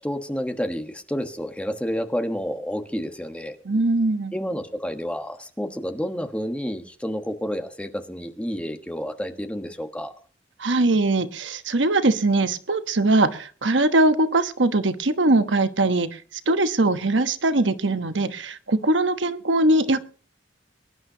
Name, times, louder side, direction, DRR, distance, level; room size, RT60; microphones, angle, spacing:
voice 1, 0.0-3.6 4.3-10.1, equal, 5° left, 6 dB, 1.3 m, -30 dB
voice 2, 3.6-4.3 10.6-16.2 16.5-20.0, right 2 dB, 85° right, 10 dB, 1.2 m, -21 dB
23.5 x 11.0 x 2.9 m, 0.40 s
head